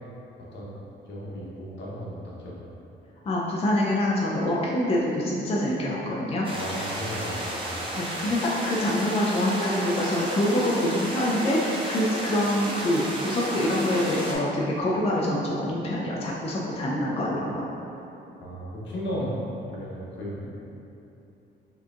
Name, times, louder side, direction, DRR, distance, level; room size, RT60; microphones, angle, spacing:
voice 1, 0.4-2.7 6.5-7.9 18.4-20.5, equal, 65° left, -5 dB, 0.9 m, -35 dB
voice 2, 3.2-6.5 7.9-17.6, left 1 dB, 30° left, -4 dB, 0.5 m, -25 dB
sound 1, 6.4-14.3, right 1 dB, 25° right, 0.7 m, -33 dB
4.6 x 2.8 x 2.4 m, 2.9 s
cardioid pair, 90°, 20 cm